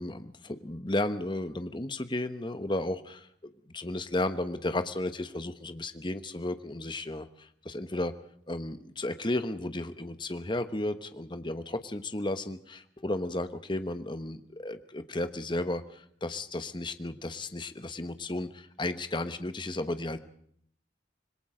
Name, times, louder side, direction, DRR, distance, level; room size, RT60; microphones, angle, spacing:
voice 1, 0.0-3.3 3.7-8.1 8.5-20.2, left 1 dB, 25° left, 10 dB, 1.2 m, -33 dB
26.0 x 21.0 x 5.0 m, 0.66 s
head